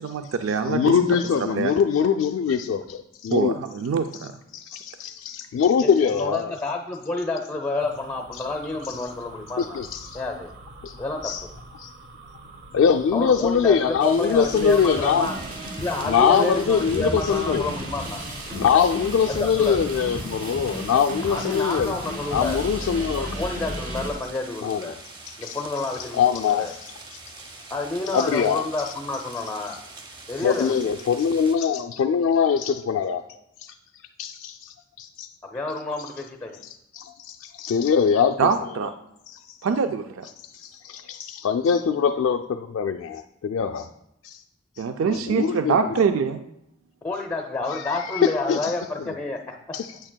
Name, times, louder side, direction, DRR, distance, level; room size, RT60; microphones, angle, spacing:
voice 1, 0.0-1.0 1.4-1.7 3.3-4.3 38.4-38.9 39.6-40.3 44.8-46.4, right 5 dB, 80° right, 8 dB, 0.4 m, -24 dB
voice 2, 0.7-3.5 4.5-6.5 9.6-10.2 10.8-11.0 11.2-11.4 11.8-11.9 12.7-15.3 16.1-17.7 18.5-21.9 22.3-23.3 24.6-24.8 25.4-25.6 26.1-27.2 28.1-28.6 30.4-33.2 33.6-33.7 34.2-35.3 36.9-38.5 39.3-39.4 40.5-43.9 44.2-44.4 45.1-45.8 48.0-48.7 49.7-49.9, left 7 dB, 75° left, 5 dB, 0.3 m, -23 dB
voice 3, 5.8-9.8 10.1-10.5 11.0-11.5 13.1-15.4 15.8-18.2 19.3-19.8 21.2-22.6 23.1-25.0 25.4-26.7 27.7-29.8 30.3-30.9 35.5-36.6 47.0-49.6, left 2 dB, 15° left, 4 dB, 0.5 m, -29 dB
sound 1, 7.8-23.2, right 1 dB, 60° right, 0.9 m, -44 dB
sound 2, 14.0-31.6, right 2 dB, 25° right, 0.8 m, -44 dB
sound 3, 14.5-24.1, equal, 45° right, 1.7 m, -34 dB
8.8 x 8.7 x 2.2 m, 0.80 s
head